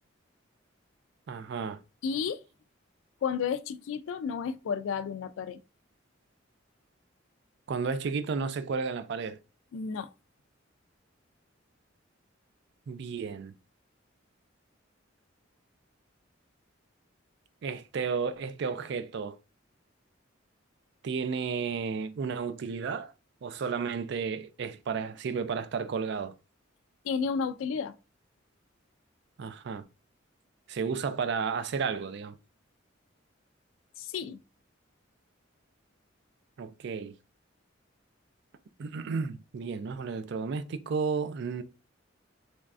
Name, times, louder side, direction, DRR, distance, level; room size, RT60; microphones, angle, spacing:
voice 1, 1.3-1.8 7.7-9.4 12.9-13.5 17.6-19.4 21.0-23.1 23.4-26.3 29.4-29.8 30.7-32.4 36.6-37.2 38.8-41.6, right 5 dB, 60° right, 0.4 m, -32 dB
voice 2, 2.0-2.4 3.2-5.6 9.7-10.1 27.0-27.9 34.0-34.4, left 6 dB, 75° left, 0.3 m, -32 dB
3.5 x 3.1 x 2.4 m
head